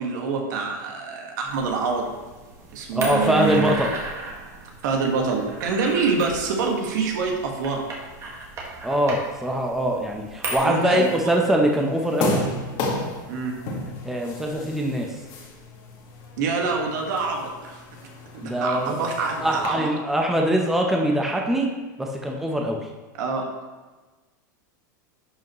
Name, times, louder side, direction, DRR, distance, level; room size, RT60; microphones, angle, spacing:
voice 1, 0.0-2.1 2.7-3.7 4.8-7.8 10.6-11.3 13.3-13.5 16.4-17.8 18.3-19.9 23.2-23.5, right 4 dB, 70° right, 1 dB, 1.7 m, -26 dB
sound 1, 1.5-10.6, right 2 dB, 30° right, 1.8 m, -36 dB
voice 2, 2.9-3.9 8.8-12.4 14.1-15.1 18.4-19.0 19.4-21.7 22.0-22.8, right 1 dB, 5° right, 1 dB, 0.8 m, -23 dB
sound 2, 10.6-19.7, left 2 dB, 50° left, 1.8 m, -33 dB
11.0 x 5.3 x 3.1 m, 1.3 s
supercardioid pair, 120°, 10 cm